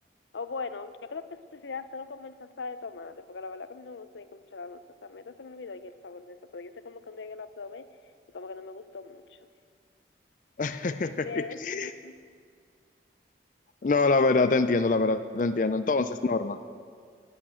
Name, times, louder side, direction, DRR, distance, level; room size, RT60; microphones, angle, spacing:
voice 1, 0.3-7.9 8.3-9.5 11.2-12.1, left 4 dB, 90° left, 12 dB, 0.6 m, -40 dB
voice 2, 10.6-11.9 13.8-16.6, left 3 dB, 45° left, 10 dB, 0.4 m, -25 dB
12.0 x 8.7 x 8.8 m, 2.1 s
head